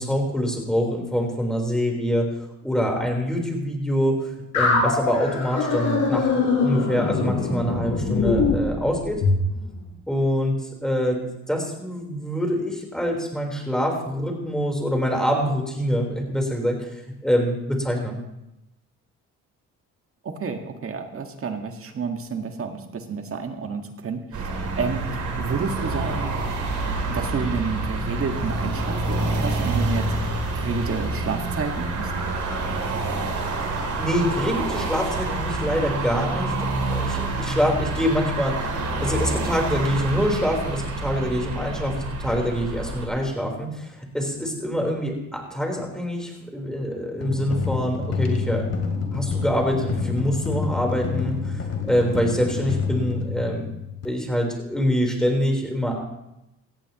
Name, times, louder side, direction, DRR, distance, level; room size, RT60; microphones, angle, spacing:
voice 1, 0.0-9.2 10.1-10.6 10.8-11.2 11.5-16.9 17.2-18.2 34.0-38.7 39.0-48.7 49.1-53.7 54.0-56.1, equal, ahead, 1 dB, 4.0 m, -25 dB
sound 1, 4.5-9.5, left 4 dB, 80° left, 6.4 m, -23 dB
voice 2, 20.2-26.3 27.1-32.1, right 5 dB, 45° right, 5 dB, 1.7 m, -30 dB
sound 2, 24.3-43.1, right 2 dB, 75° right, 3.2 m, -27 dB
sound 3, 47.2-54.1, left 5 dB, 55° left, 2.7 m, -28 dB
18.0 x 14.5 x 3.0 m, 0.88 s
cardioid pair, 90°, 30 cm